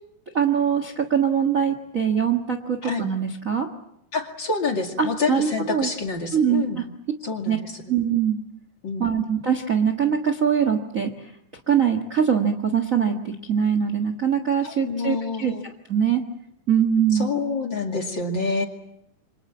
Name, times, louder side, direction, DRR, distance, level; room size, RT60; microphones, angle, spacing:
voice 1, 0.3-3.7 5.0-5.9 6.3-6.8 7.4-7.6 7.9-8.4 9.0-11.1 11.7-16.2 16.7-17.3, right 8 dB, 35° right, 7 dB, 1.3 m, -22 dB
voice 2, 4.1-6.8 7.2-7.8 8.8-9.0 14.6-15.6 17.1-18.6, left 4 dB, 35° left, 3 dB, 2.6 m, -27 dB
28.0 x 25.5 x 7.4 m, 0.78 s
omnidirectional pair, 3.8 m